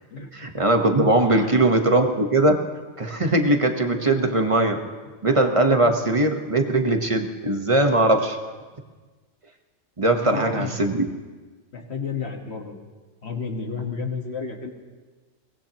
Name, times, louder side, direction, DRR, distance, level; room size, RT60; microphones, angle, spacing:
voice 1, 0.3-2.6 3.0-4.8 5.2-8.4 10.0-11.1, right 2 dB, 25° right, 5 dB, 1.1 m, -20 dB
voice 2, 1.2-1.6 4.2-4.4 5.1-5.2 10.1-10.8 11.7-12.8 13.2-14.7, left 5 dB, 55° left, 3 dB, 1.7 m, -32 dB
22.5 x 19.0 x 3.0 m, 1.3 s
omnidirectional pair, 1.4 m